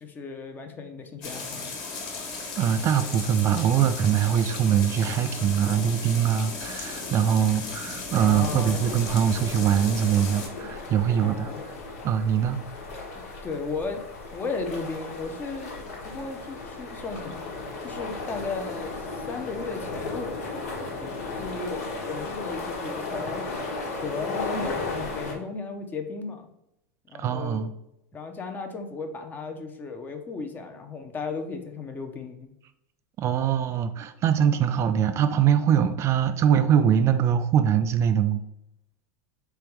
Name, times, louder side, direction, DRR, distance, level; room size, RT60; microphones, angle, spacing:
voice 1, 0.0-1.7 8.2-8.9 11.2-11.6 12.5-12.6 13.4-14.0 14.3-15.7 16.0-17.4 17.8-23.4 23.9-26.5 27.1-27.6 28.1-32.5, left 4 dB, 20° left, 5 dB, 0.6 m, -35 dB
sound 1, 1.2-10.5, left 4 dB, 50° left, 1.4 m, -36 dB
voice 2, 2.6-11.5 12.0-12.6 27.2-27.7 33.2-38.4, right 8 dB, 35° right, 9 dB, 0.3 m, -23 dB
sound 2, 8.1-25.3, left 3 dB, 80° left, 1.4 m, -35 dB
3.4 x 3.4 x 4.5 m, 0.82 s
supercardioid pair, 125°, 8 cm